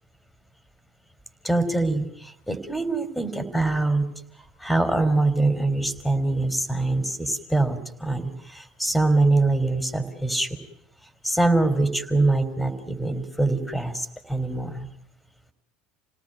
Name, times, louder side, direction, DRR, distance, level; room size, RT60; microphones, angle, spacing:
voice 1, 1.4-4.1 4.6-10.6 11.2-14.9, right 2 dB, ahead, 9 dB, 3.6 m, -24 dB
28.5 x 18.5 x 9.2 m, 0.76 s
figure-of-eight pair, 70°, 0 cm